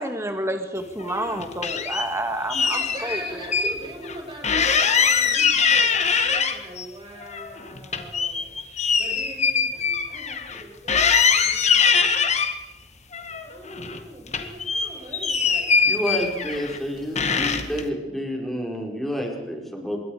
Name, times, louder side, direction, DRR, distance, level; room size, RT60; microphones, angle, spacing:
voice 1, 0.0-3.5, right 1 dB, 15° right, 6 dB, 1.9 m, -29 dB
sound 1, 1.0-2.1 2.5-3.7 4.0-4.1 4.4-6.8 7.2-10.6 10.9-12.5 13.1-14.0 14.3-16.8 17.2-17.8, left 6 dB, 40° left, 1.9 m, -22 dB
voice 2, 2.6-11.0 11.3-12.2 13.4-16.0 16.8-17.8, right 1 dB, 30° right, -1 dB, 7.9 m, -41 dB
voice 3, 15.9-20.0, equal, ahead, 0 dB, 5.3 m, -29 dB
26.0 x 23.0 x 5.0 m, 1.1 s
head